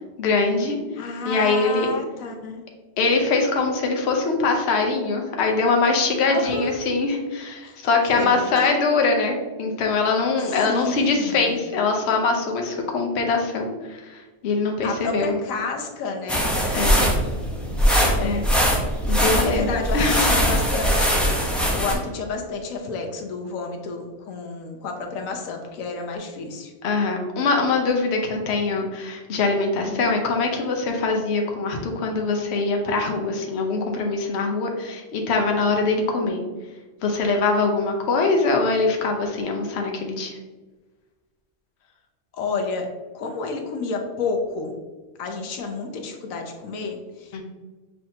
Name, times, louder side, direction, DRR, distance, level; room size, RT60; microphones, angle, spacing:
voice 1, 0.2-0.8 1.2-1.9 3.0-15.3 16.7-17.1 18.2-18.4 19.1-19.7 19.9-20.3 26.8-36.4 37.0-40.4 47.3-47.4, left 3 dB, 60° left, 2 dB, 0.9 m, -23 dB
voice 2, 1.0-2.6 6.2-6.7 7.6-7.8 8.1-8.5 10.6-11.6 14.8-16.5 18.1-18.4 19.4-26.7 29.8-30.1 42.3-42.9 43.1-44.7 45.2-47.4, left 4 dB, 90° left, 3 dB, 1.1 m, -30 dB
sound 1, 16.3-21.9, equal, ahead, 0.6 m, -21 dB
5.7 x 3.2 x 2.8 m, 1.2 s
omnidirectional pair, 1.4 m